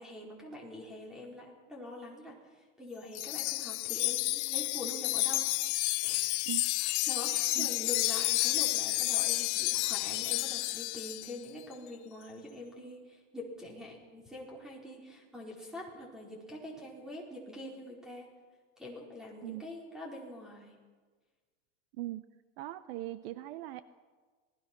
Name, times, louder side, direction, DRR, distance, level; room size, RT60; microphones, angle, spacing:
voice 1, 0.0-5.5 6.0-6.3 6.8-18.3 18.8-20.7, left 1 dB, ahead, -2 dB, 4.6 m, -45 dB
Wind chime, 3.1-11.3, left 22 dB, 75° left, 0.6 m, -31 dB
voice 2, 21.9-22.2 22.6-23.8, right 15 dB, 55° right, 13 dB, 0.9 m, -40 dB
27.0 x 20.0 x 6.1 m, 1.4 s
supercardioid pair, 170°, 34 cm